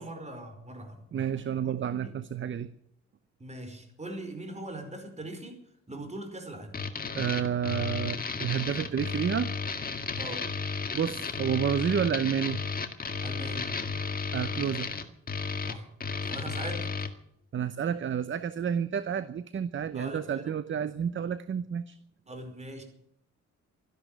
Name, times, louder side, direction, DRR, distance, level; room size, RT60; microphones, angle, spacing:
voice 1, 0.0-1.0 1.6-2.1 3.4-5.6 5.9-6.8 10.2-10.5 13.2-13.8 15.6-15.9 16.2-16.9 19.9-20.6 22.3-22.8, right 1 dB, 20° right, 6 dB, 5.0 m, -41 dB
voice 2, 1.1-2.7 7.1-9.5 10.9-12.6 14.3-14.9 17.5-22.0, right 8 dB, 40° right, 14 dB, 0.8 m, -30 dB
sound 1, 6.7-17.1, left 4 dB, 30° left, 1.9 m, -33 dB
13.0 x 12.0 x 9.2 m, 0.74 s
cardioid pair, 90°, 30 cm